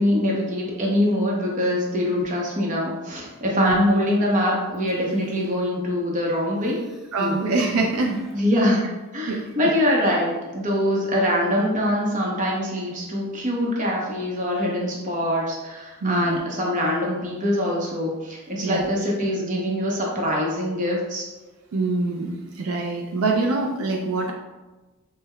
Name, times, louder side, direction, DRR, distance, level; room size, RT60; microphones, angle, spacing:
voice 1, 0.0-6.8 8.3-8.8 9.1-21.3, equal, 40° right, -3 dB, 0.7 m, -23 dB
Human voice, 4.7-5.6 6.5-8.5 9.4-9.5, left 1 dB, ahead, 0.4 m, -40 dB
voice 2, 7.1-8.3 9.3-9.7 16.0-16.4 18.6-18.9 21.7-24.3, right 3 dB, 75° right, 1 dB, 0.4 m, -24 dB
5.3 x 2.1 x 2.2 m, 1.2 s
head